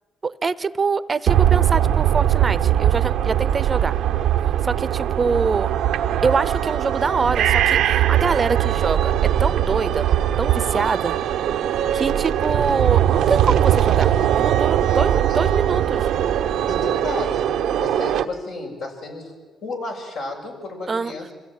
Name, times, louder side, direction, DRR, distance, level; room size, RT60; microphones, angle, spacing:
voice 1, 0.2-3.9 4.6-5.7 6.2-10.1 10.4-11.2 11.9-16.1 20.9-21.1, right 4 dB, 35° right, 15 dB, 0.7 m, -24 dB
sound 1, 1.3-18.3, right 10 dB, 85° right, 0.9 m, -20 dB
voice 2, 16.7-19.3 19.6-21.3, left 2 dB, 80° left, 0 dB, 6.8 m, -32 dB
26.5 x 16.5 x 9.0 m, 1.4 s
cardioid pair, 90°, 0 cm